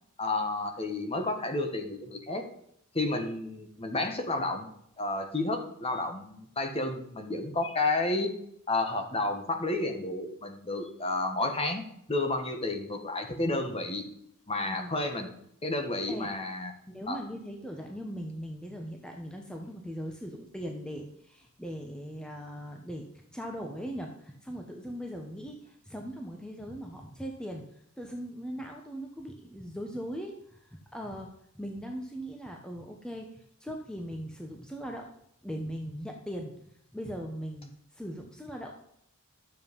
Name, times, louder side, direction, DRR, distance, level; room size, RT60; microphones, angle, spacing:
voice 1, 0.2-2.4 2.9-4.7 5.0-8.3 8.7-11.8 12.1-14.1 14.5-15.3 15.6-16.7 17.1-17.2, left 2 dB, 25° left, 5 dB, 1.6 m, -31 dB
voice 2, 14.6-15.0 16.1-16.3 16.9-27.7 28.0-31.3 31.5-33.3 33.6-35.1 35.4-36.5 36.9-38.7, equal, 5° left, 2 dB, 1.0 m, -39 dB
12.5 x 7.7 x 5.3 m, 0.73 s
head